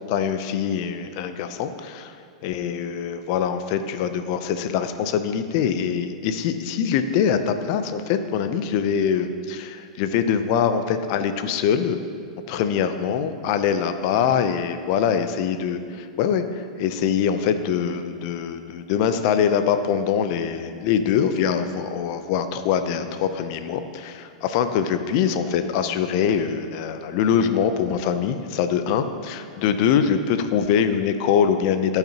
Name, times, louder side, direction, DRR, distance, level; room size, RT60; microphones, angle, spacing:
voice 1, 0.0-2.2 2.4-12.0 12.5-32.0, left 7 dB, 55° left, 9 dB, 0.6 m, -23 dB
14.0 x 5.8 x 2.9 m, 2.2 s
hypercardioid pair, 110°, 4 cm